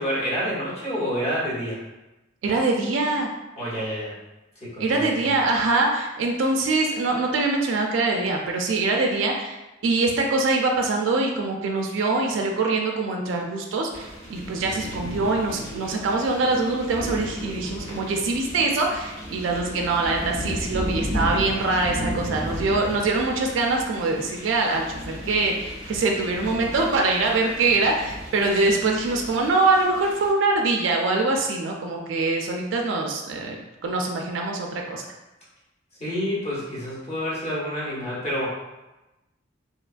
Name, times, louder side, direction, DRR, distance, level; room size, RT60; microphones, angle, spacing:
voice 1, 0.0-1.8 3.6-4.1 4.6-5.1 36.0-38.5, equal, 35° left, -8 dB, 1.0 m, -28 dB
voice 2, 2.4-3.3 4.8-9.6 9.8-35.0, right 3 dB, 70° right, 1 dB, 0.3 m, -24 dB
sound 1, 13.9-30.3, equal, 75° left, 1.1 m, -34 dB
2.8 x 2.2 x 2.4 m, 1.0 s
head